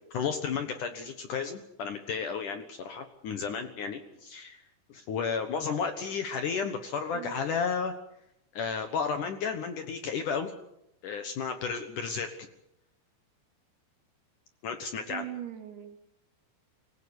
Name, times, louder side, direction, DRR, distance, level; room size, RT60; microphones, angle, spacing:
voice 1, 0.1-4.6 4.9-7.9 8.5-10.5 11.0-12.3 14.6-15.3, left 6 dB, 60° left, 7 dB, 2.3 m, -33 dB
voice 2, 15.1-16.0, right 12 dB, 65° right, 4 dB, 4.3 m, -40 dB
24.5 x 16.5 x 8.3 m, 0.82 s
omnidirectional pair, 4.9 m